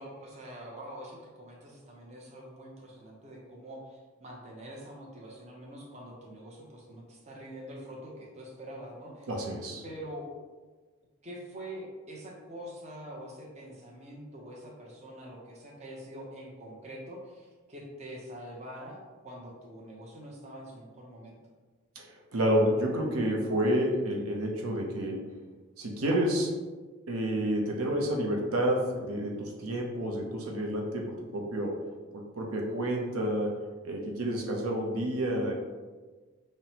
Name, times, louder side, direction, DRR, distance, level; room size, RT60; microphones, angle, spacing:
voice 1, 0.0-9.3 9.8-10.3 11.2-21.4, equal, 30° right, -2 dB, 0.6 m, -45 dB
voice 2, 9.3-9.8 22.0-25.3 25.8-26.5 27.1-31.8 32.1-33.5 33.8-35.5, right 1 dB, 80° right, 0 dB, 0.6 m, -29 dB
5.7 x 2.1 x 2.8 m, 1.3 s
head